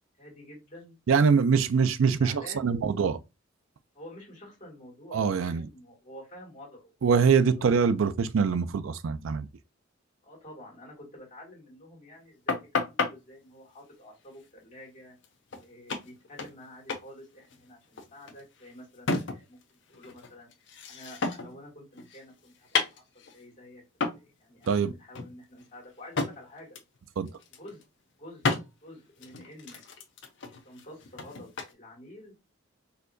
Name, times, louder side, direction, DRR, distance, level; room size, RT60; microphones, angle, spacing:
voice 1, 0.1-0.9 1.4-1.6 2.2-2.7 3.9-6.9 7.4-7.7 10.2-15.2 15.6-19.6 19.9-20.5 20.9-23.8 24.1-26.8 27.6-27.8 28.2-28.5 28.8-29.8 30.5-32.3, left 1 dB, 40° left, 2.0 m, -49 dB
voice 2, 1.1-3.2 5.1-5.7 7.0-9.5 24.7-24.9 27.2-27.3, right 6 dB, 80° right, 0.4 m, -24 dB
sound 1, 12.5-13.1 15.2-15.3 15.5-15.6 15.9-16.6 16.9-17.1 17.4-19.6 19.9-21.6 22.0-23.4 24.0-24.3 24.6-24.8 25.1-26.4 26.8-27.0 27.3-27.8 28.4-28.7 29.2-31.7, left 4 dB, 65° left, 0.7 m, -32 dB
4.2 x 2.8 x 2.6 m
head